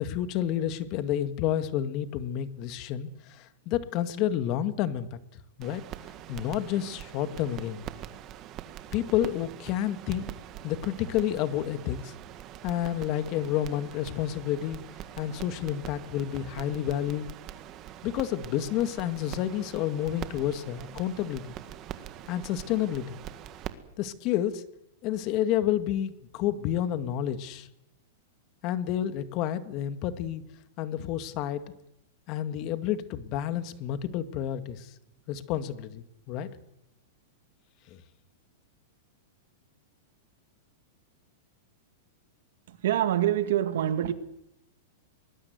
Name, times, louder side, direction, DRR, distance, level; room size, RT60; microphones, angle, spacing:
voice 1, 0.0-5.2 5.6-5.8 6.3-7.9 8.9-10.3 10.6-12.1 12.6-14.8 15.2-17.3 18.0-21.6 22.3-23.2 24.0-24.6 25.0-27.7 28.6-30.4 30.8-31.6 32.3-34.9 35.3-36.5 37.9-38.0, left 11 dB, 40° left, 1.8 m, -30 dB
sound 1, 5.6-23.7, right 12 dB, 35° right, 1.7 m, -43 dB
voice 2, 42.7-44.1, right 11 dB, 70° right, 2.0 m, -25 dB
23.5 x 20.0 x 8.1 m
supercardioid pair, 145°, 0 cm